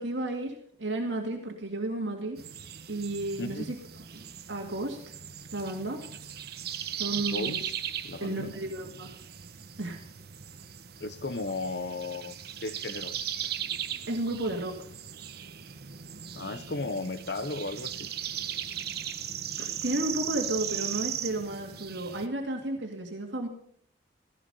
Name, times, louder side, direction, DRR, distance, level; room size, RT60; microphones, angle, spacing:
voice 1, 0.0-2.4 2.9-3.8 4.1-5.0 5.5-6.0 7.0-7.6 8.2-9.2 9.8-10.0 14.1-14.8 19.6-23.5, right 2 dB, 90° right, 2.2 m, -33 dB
sound 1, 2.4-22.3, right 9 dB, 60° right, 1.0 m, -38 dB
voice 2, 3.4-3.8 7.2-8.6 8.9-9.0 11.0-12.3 12.6-13.2 16.4-18.1, left 3 dB, 65° left, 0.9 m, -35 dB
15.5 x 14.0 x 5.5 m
head